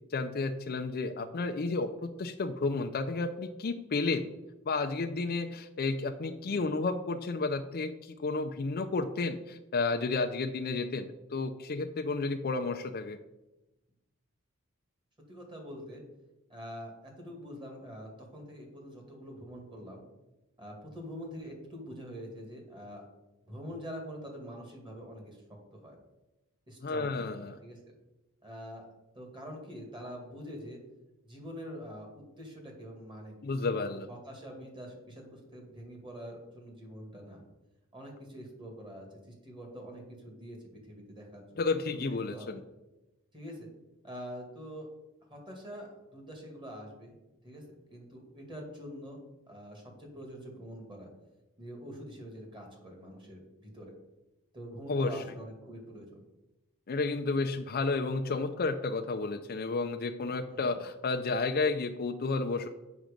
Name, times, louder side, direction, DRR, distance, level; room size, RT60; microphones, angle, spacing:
voice 1, 0.1-4.3 4.7-13.2 26.8-27.6 33.4-34.1 41.6-42.5 54.9-55.1 56.9-62.7, left 3 dB, 45° left, 5 dB, 0.5 m, -32 dB
voice 2, 6.3-6.7 15.3-16.0 16.5-20.0 20.6-23.0 23.4-25.6 25.8-26.0 26.7-27.8 28.4-28.9 29.1-30.8 31.2-37.4 37.9-42.5 43.3-43.7 44.0-44.9 45.3-47.2 47.4-47.6 47.9-49.2 49.5-51.1 51.6-53.9 54.5-56.2 60.5-60.7, equal, 20° right, 2 dB, 2.1 m, -45 dB
7.6 x 6.0 x 5.2 m, 1.0 s
head